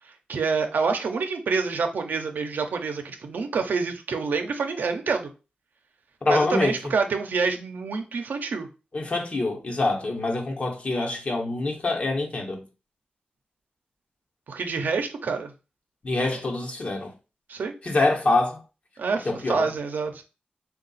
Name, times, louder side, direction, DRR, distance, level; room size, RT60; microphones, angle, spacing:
voice 1, 0.3-5.3 6.2-8.7 14.5-15.5 17.5-17.7 19.0-20.2, right 4 dB, 90° right, 0.6 m, -27 dB
voice 2, 6.2-6.8 8.9-12.7 16.0-17.1 17.8-18.6 19.2-19.7, left 2 dB, 45° left, 1.0 m, -25 dB
3.7 x 2.3 x 4.0 m
wide cardioid pair, 95°, 3 cm